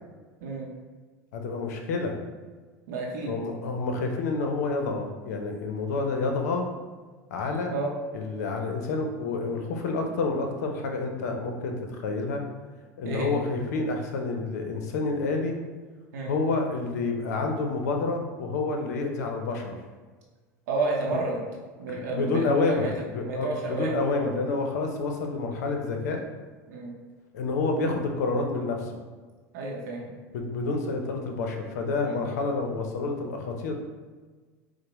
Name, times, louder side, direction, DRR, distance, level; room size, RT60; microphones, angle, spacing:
voice 1, 0.4-0.7 2.9-3.3 7.7-7.9 13.0-13.4 16.1-16.3 20.7-21.4 21.8-22.9 23.2-24.3 26.7-26.9 29.5-30.1 32.0-32.2, right 3 dB, 75° right, -1 dB, 0.6 m, -31 dB
voice 2, 1.3-2.2 3.3-6.7 7.3-7.7 8.1-11.7 12.0-12.4 13.0-15.6 16.3-19.8 21.9-26.2 27.3-28.9 30.3-33.7, left 3 dB, 80° left, 3 dB, 0.5 m, -28 dB
4.5 x 2.0 x 3.0 m, 1.4 s
hypercardioid pair, 90°, 9 cm